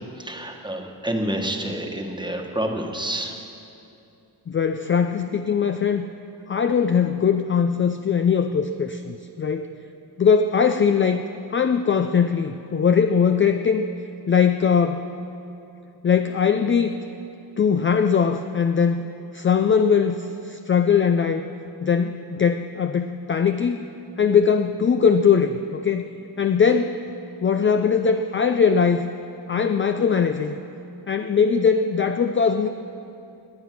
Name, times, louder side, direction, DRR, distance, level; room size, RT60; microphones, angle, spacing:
voice 1, 0.2-3.4, right 1 dB, 10° right, 2 dB, 1.3 m, -28 dB
voice 2, 4.5-6.1 6.5-9.7 10.2-11.2 11.5-13.9 14.3-15.0 16.0-17.0 17.6-19.1 19.3-21.4 21.8-23.8 24.2-26.1 26.4-27.0 27.4-29.1 29.5-30.6 31.1-32.7, left 6 dB, 30° left, 7 dB, 0.4 m, -20 dB
18.5 x 9.8 x 6.0 m, 2.7 s
wide cardioid pair, 120°, 42 cm